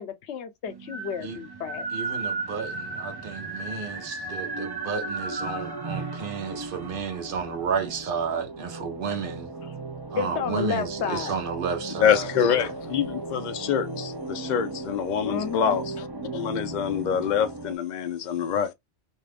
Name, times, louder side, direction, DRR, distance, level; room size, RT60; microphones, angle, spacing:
voice 1, 0.0-1.9 9.6-9.8 10.1-11.3 15.3-15.8, left 7 dB, 80° left, 0.9 m, -31 dB
sound 1, 0.7-17.8, right 3 dB, 30° right, 0.4 m, -35 dB
voice 2, 1.9-9.5 10.1-12.6, right 6 dB, 55° right, 0.9 m, -32 dB
voice 3, 12.0-16.1 16.3-18.7, left 8 dB, 55° left, 0.5 m, -25 dB
2.6 x 2.4 x 3.3 m
omnidirectional pair, 1.2 m